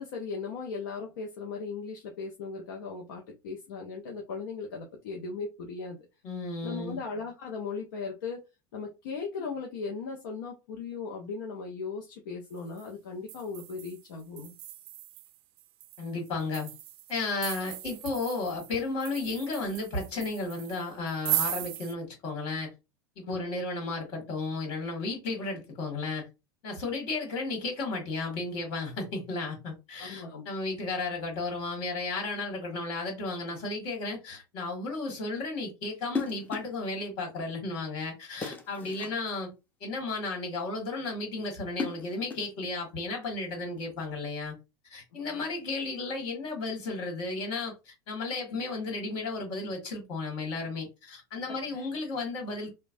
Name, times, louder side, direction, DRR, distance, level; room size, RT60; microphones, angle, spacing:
voice 1, 0.0-6.0 6.6-8.4 8.7-14.6 23.2-23.5 30.0-30.4 45.3-45.5 51.7-51.9, left 4 dB, 75° left, 0.6 m, -38 dB
voice 2, 6.2-7.0 16.0-16.7 17.1-22.7 23.1-26.3 26.6-39.5 39.8-44.5 44.8-52.7, left 3 dB, 55° left, 1.8 m, -34 dB
sound 1, 12.6-12.9 13.3-21.9, right 16 dB, 55° right, 0.4 m, -37 dB
sound 2, 36.1-36.8 38.4-39.2 41.5-42.6, left 4 dB, 15° left, 0.8 m, -36 dB
3.0 x 2.2 x 2.6 m
hypercardioid pair, 105°, 11 cm